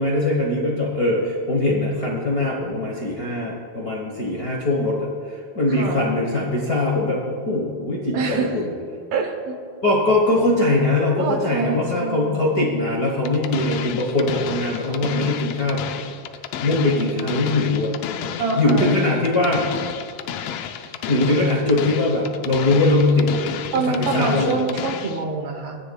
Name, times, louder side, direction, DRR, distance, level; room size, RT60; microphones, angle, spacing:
voice 1, 0.0-8.7 9.8-15.9 16.6-17.9 18.5-19.7 21.1-23.4 23.7-24.5, left 2 dB, 50° left, -2 dB, 1.1 m, -21 dB
voice 2, 8.1-8.5 9.1-9.6 11.2-12.4 16.8-17.3 18.4-19.0 23.7-25.8, right 4 dB, 65° right, 4 dB, 2.0 m, -26 dB
sound 1, 13.2-25.2, left 9 dB, 80° left, 1.3 m, -32 dB
23.0 x 10.0 x 2.3 m, 2.3 s
omnidirectional pair, 3.4 m